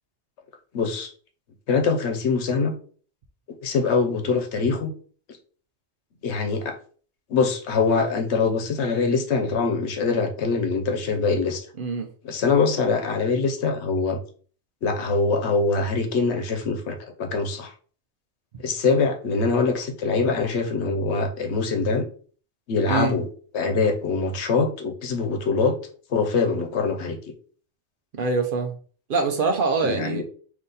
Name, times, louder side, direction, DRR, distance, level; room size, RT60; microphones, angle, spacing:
voice 1, 0.7-1.1 1.7-2.7 3.6-4.9 6.2-6.8 7.3-11.7 12.2-14.2 14.8-17.7 18.6-22.1 22.7-23.3 23.5-25.7 26.1-27.2 29.8-30.2, left 4 dB, 75° left, 1.0 m, -23 dB
voice 2, 22.9-23.2 28.1-28.7 29.1-30.2, right 4 dB, 55° right, 0.7 m, -24 dB
4.0 x 2.8 x 3.8 m
omnidirectional pair, 1.2 m